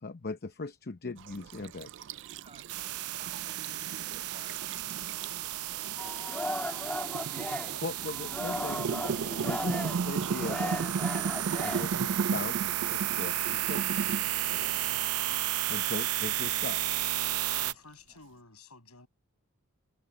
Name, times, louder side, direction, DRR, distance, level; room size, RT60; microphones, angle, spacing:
voice 1, 0.0-2.1 7.8-11.0 11.6-14.1 15.7-16.8, left 3 dB, 45° left, 0.8 m, -40 dB
sound 1, 1.2-14.9, right 5 dB, 55° right, 0.4 m, -36 dB
sound 2, 2.7-17.7, right 13 dB, 85° right, 0.7 m, -33 dB
Singing, 6.0-12.4, left 1 dB, 5° left, 1.8 m, -37 dB
voice 2, 14.7-15.5 17.4-19.1, left 4 dB, 80° left, 7.7 m, -53 dB
voice 3, 18.1-18.2, right 4 dB, 25° right, 6.1 m, -60 dB
head